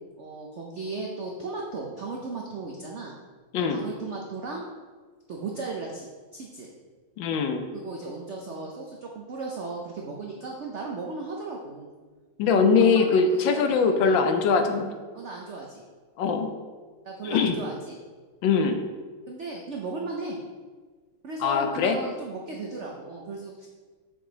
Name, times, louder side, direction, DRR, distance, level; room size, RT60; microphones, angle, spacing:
voice 1, 0.2-3.1 3.7-4.6 5.3-6.1 6.3-6.7 7.7-11.9 12.8-14.2 15.1-15.8 17.0-18.0 19.3-20.4 21.2-23.7, right 3 dB, 80° right, -1 dB, 0.6 m, -36 dB
voice 2, 7.2-7.7 12.4-14.9 16.2-16.5 17.2-17.6 18.4-18.8 21.4-22.0, left 5 dB, 75° left, 6 dB, 1.3 m, -22 dB
6.3 x 4.9 x 3.9 m, 1.4 s
omnidirectional pair, 2.1 m